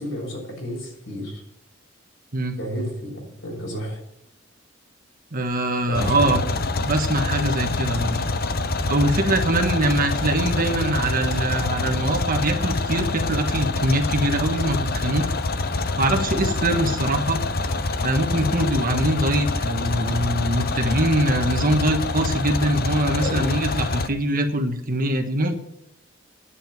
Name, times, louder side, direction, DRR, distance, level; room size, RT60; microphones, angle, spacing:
voice 1, 0.0-1.4 2.6-4.0 5.9-6.3 23.0-23.4, equal, 70° left, -1 dB, 6.6 m, -31 dB
voice 2, 5.3-6.4 6.8-8.2 8.9-15.3 16.0-17.4 18.0-25.6, right 1 dB, 45° right, 5 dB, 1.5 m, -23 dB
sound 1, 5.9-24.1, left 3 dB, 50° left, 0.9 m, -26 dB
9.9 x 9.0 x 9.2 m, 0.76 s
head